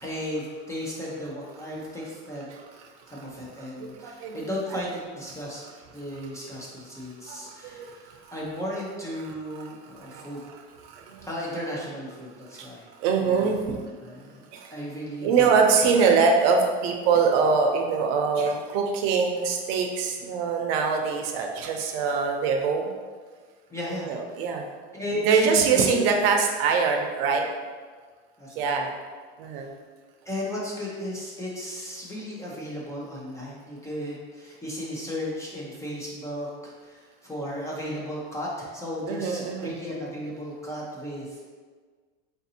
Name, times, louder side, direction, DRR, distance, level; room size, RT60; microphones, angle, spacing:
voice 1, 0.0-2.5 3.1-5.6 5.9-10.4 11.3-12.9 13.2-13.5 14.0-14.4 14.7-15.5 23.7-24.1 24.9-25.9 28.4-28.8 30.3-41.5, equal, 10° left, -5 dB, 0.5 m, -35 dB
voice 2, 2.5-3.2 3.8-4.8 7.3-8.4 9.6-9.7 10.0-10.6 10.8-11.3 12.5-12.7 13.0-13.8 14.5-14.7 15.2-22.9 23.9-24.7 25.2-27.5 28.6-28.9 29.4-29.7 39.1-39.7, right 5 dB, 65° right, 3 dB, 0.6 m, -24 dB
3.9 x 2.6 x 2.7 m, 1.5 s
supercardioid pair, 125°, 31 cm